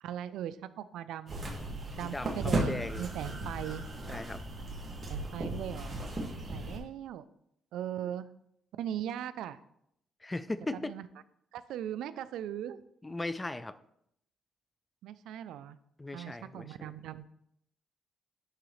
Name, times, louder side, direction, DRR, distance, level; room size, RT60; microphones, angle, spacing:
voice 1, 0.0-1.5 1.9-3.8 4.9-6.0 6.5-7.2 7.7-8.3 8.8-9.6 10.8-11.1 11.5-12.8 15.0-15.8 16.1-17.3, right 10 dB, 85° right, 15 dB, 0.3 m, -39 dB
sound 1, 1.3-6.8, right 2 dB, 35° right, 1.8 m, -36 dB
voice 2, 2.0-3.1 4.1-4.4 10.2-11.0 13.0-13.8 16.0-16.9, left 2 dB, 15° left, 14 dB, 0.4 m, -38 dB
11.0 x 3.8 x 3.1 m, 0.74 s
cardioid pair, 90°, 0 cm